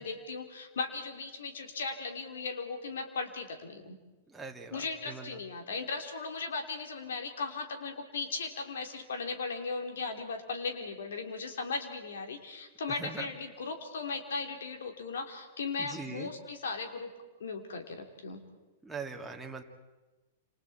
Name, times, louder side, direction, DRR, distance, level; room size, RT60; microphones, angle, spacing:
voice 1, 0.0-4.0 4.7-17.1 17.4-18.4, left 4 dB, 75° left, 4 dB, 3.5 m, -37 dB
voice 2, 4.3-5.4 13.0-13.3 15.8-16.3 18.8-19.6, right 4 dB, 10° right, 0 dB, 2.4 m, -42 dB
29.0 x 27.5 x 4.4 m, 1.1 s
hypercardioid pair, 110°, 0 cm